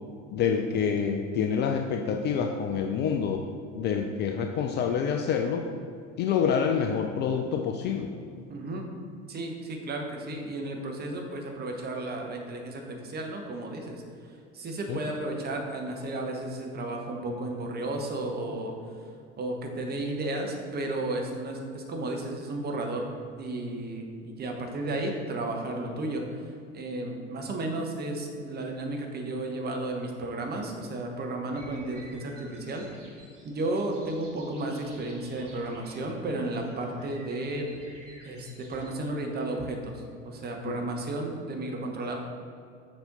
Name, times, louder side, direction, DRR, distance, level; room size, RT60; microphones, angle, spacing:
voice 1, 0.3-3.5 3.7-5.7 6.2-8.1 14.9-15.0 40.6-40.8, left 7 dB, 30° left, 4 dB, 0.4 m, -27 dB
voice 2, 8.5-8.8 9.3-18.7 19.4-23.1 23.4-32.8 33.4-37.7 38.2-42.2, right 2 dB, 25° right, 2 dB, 1.1 m, -33 dB
sound 1, 31.5-38.9, right 2 dB, 80° right, 1.2 m, -52 dB
6.9 x 5.4 x 3.9 m, 2.3 s
figure-of-eight pair, 70°, 36 cm